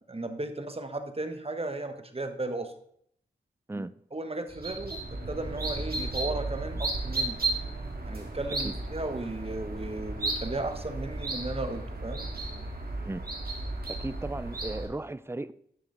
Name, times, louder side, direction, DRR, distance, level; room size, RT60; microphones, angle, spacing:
voice 1, 0.1-2.7 3.7-5.0 5.3-7.4 8.1-12.2, right 2 dB, 30° right, 1.2 m, -35 dB
sound 1, 4.5-14.9, right 2 dB, 55° right, 2.0 m, -34 dB
voice 2, 13.9-15.5, right 2 dB, 15° right, 0.5 m, -36 dB
11.0 x 6.2 x 3.8 m
cardioid pair, 45°, 19 cm